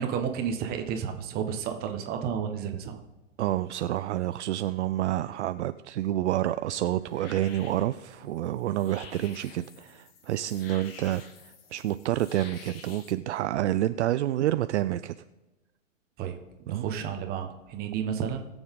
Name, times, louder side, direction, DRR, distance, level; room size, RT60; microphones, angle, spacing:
voice 1, 0.0-3.0 16.2-16.4 16.6-18.5, right 7 dB, 25° right, 5 dB, 1.2 m, -31 dB
voice 2, 3.4-15.1 16.7-16.9, right 13 dB, 60° right, 12 dB, 0.5 m, -28 dB
sound 1, 6.3-13.1, left 5 dB, 45° left, 1.7 m, -50 dB
20.0 x 7.1 x 3.7 m, 1.1 s
hypercardioid pair, 140°, 39 cm